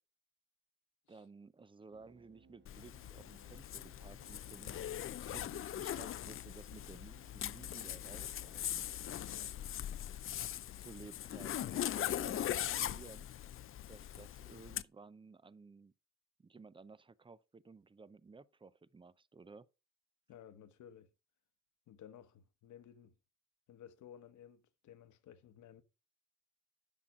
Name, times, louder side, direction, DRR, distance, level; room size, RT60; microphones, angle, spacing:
voice 1, 1.1-4.9 5.2-8.8 10.8-13.3 13.9-15.9 16.4-19.7, right 4 dB, 15° right, 0.5 m, -56 dB
sound 1, 1.9-9.8, right 5 dB, 35° right, 1.3 m, -67 dB
Zipper (clothing), 2.7-14.8, left 11 dB, 45° left, 0.5 m, -41 dB
voice 2, 9.2-9.6 20.3-21.1 21.9-23.1 23.7-25.8, left 9 dB, 75° left, 1.1 m, -56 dB
10.0 x 6.0 x 3.7 m
cardioid pair, 90°, 30 cm